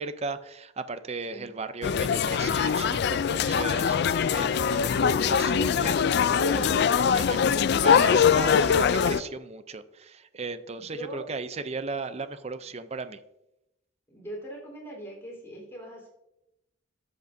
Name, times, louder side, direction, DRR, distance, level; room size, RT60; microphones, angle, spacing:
voice 1, 0.0-13.2, right 4 dB, 35° right, 12 dB, 0.5 m, -36 dB
sound 1, 1.8-9.2, left 7 dB, 60° left, 0.4 m, -23 dB
voice 2, 10.8-11.2 14.1-16.1, equal, 15° left, -3 dB, 3.8 m, -41 dB
13.5 x 7.9 x 2.7 m, 0.88 s
head